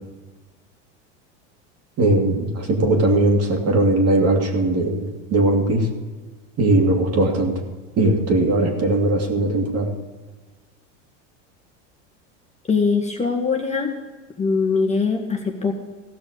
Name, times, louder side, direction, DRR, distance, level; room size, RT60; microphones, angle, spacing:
voice 1, 2.0-5.9 6.6-7.5 8.0-9.9, right 2 dB, 40° right, 2 dB, 2.6 m, -19 dB
voice 2, 12.7-13.9 14.4-15.7, left 5 dB, 20° left, 2 dB, 1.5 m, -21 dB
15.5 x 6.2 x 6.6 m, 1.3 s
supercardioid pair, 110°, 37 cm